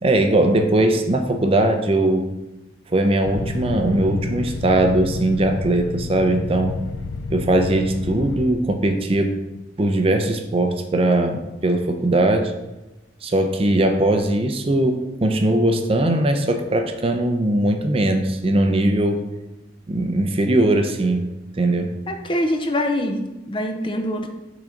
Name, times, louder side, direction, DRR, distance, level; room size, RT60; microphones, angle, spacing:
voice 1, 0.0-2.3 2.9-6.8 7.3-9.3 9.8-12.5 13.2-19.2 19.9-21.3 21.5-21.9, right 1 dB, 30° right, 6 dB, 0.5 m, -20 dB
sound 1, 3.2-8.5, left 3 dB, 85° left, 0.4 m, -30 dB
voice 2, 22.1-24.3, left 1 dB, 25° left, 5 dB, 0.5 m, -24 dB
5.7 x 4.0 x 5.1 m, 1.0 s
head